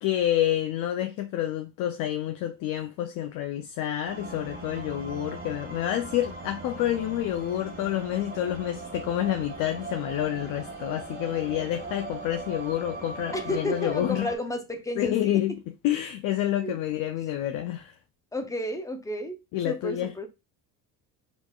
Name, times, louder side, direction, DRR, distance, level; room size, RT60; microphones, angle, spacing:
voice 1, 0.0-14.3 15.0-15.5 15.8-17.9 19.5-20.1, left 12 dB, 55° left, 0.5 m, -28 dB
sound 1, 4.0-14.4, right 3 dB, 25° right, 1.0 m, -39 dB
voice 2, 13.3-15.4 16.6-16.8 18.3-19.4 19.6-20.3, left 1 dB, 10° left, 0.5 m, -32 dB
4.3 x 2.9 x 2.3 m
cardioid pair, 125°, 38 cm